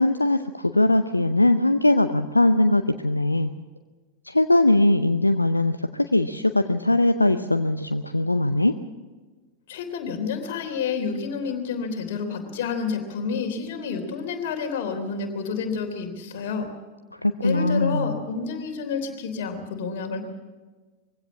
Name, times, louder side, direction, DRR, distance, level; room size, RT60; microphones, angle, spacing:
voice 1, 0.0-3.5 4.2-8.7 17.1-18.2, left 2 dB, 85° left, 9 dB, 0.6 m, -21 dB
voice 2, 9.7-16.7 17.4-20.2, left 5 dB, 55° left, 4 dB, 3.4 m, -29 dB
22.5 x 16.5 x 7.4 m, 1.3 s
figure-of-eight pair, 90°, 0 cm